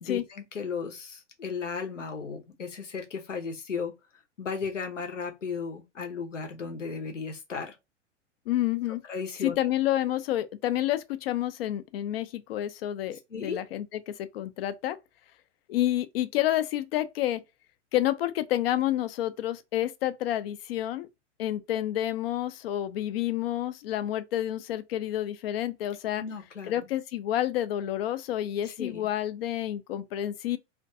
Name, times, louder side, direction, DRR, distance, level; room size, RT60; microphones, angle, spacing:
voice 1, 0.0-3.9 4.4-7.7 9.1-9.5 13.3-13.6 26.2-26.9 28.7-29.1, left 5 dB, 85° left, 0.8 m, -35 dB
voice 2, 8.5-9.0 9.4-15.0 15.7-17.4 17.9-21.1 21.4-26.2 26.6-30.6, left 13 dB, 55° left, 0.5 m, -29 dB
2.5 x 2.2 x 2.5 m
figure-of-eight pair, 100°, 36 cm